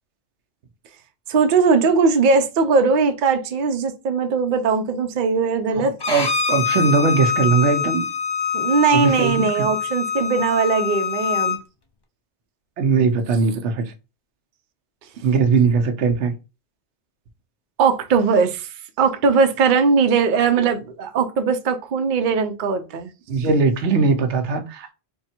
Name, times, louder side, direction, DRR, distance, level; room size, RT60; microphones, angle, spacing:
voice 1, 1.3-5.9 8.5-11.6 17.8-18.7 19.0-23.1, right 5 dB, 55° right, 0.7 m, -19 dB
voice 2, 5.8-8.1 8.9-9.7 12.8-13.8 15.2-16.3 23.3-24.9, right 4 dB, 85° right, 1.0 m, -20 dB
Bowed string instrument, 6.0-11.6, left 6 dB, 30° left, 0.5 m, -24 dB
3.6 x 2.3 x 4.3 m
omnidirectional pair, 1.2 m